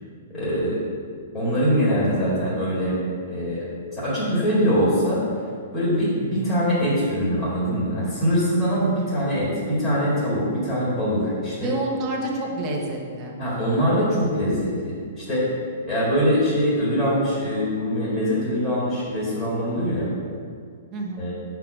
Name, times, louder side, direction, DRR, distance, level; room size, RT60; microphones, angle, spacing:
voice 1, 0.3-0.8 1.3-3.0 3.3-3.7 3.9-5.2 5.7-11.7 13.4-15.5 15.8-20.1 21.2-21.3, equal, 15° left, -8 dB, 2.0 m, -23 dB
voice 2, 11.6-13.4 20.9-21.3, right 2 dB, 20° right, -2 dB, 1.0 m, -28 dB
5.8 x 4.6 x 6.4 m, 2.1 s
hypercardioid pair, 170°, 0 cm